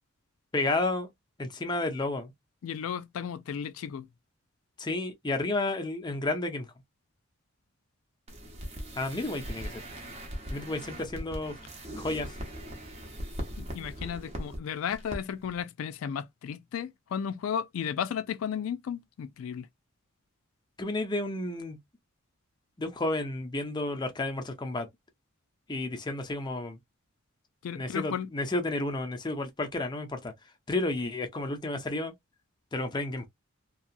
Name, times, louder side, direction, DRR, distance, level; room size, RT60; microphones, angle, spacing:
voice 1, 0.5-1.1 1.4-2.3 4.8-6.7 9.0-9.8 10.5-11.6 12.0-12.3 20.8-21.8 22.8-24.9 25.7-26.8 27.7-30.3 30.7-32.1 32.7-33.3, left 2 dB, 20° left, 0.5 m, -31 dB
voice 2, 2.6-4.1 13.6-19.7 27.6-28.3, left 8 dB, 85° left, 0.3 m, -34 dB
sound 1, 8.3-14.6 14.9-15.2 15.4-15.6, equal, 30° right, 0.7 m, -40 dB
2.7 x 2.3 x 2.4 m
head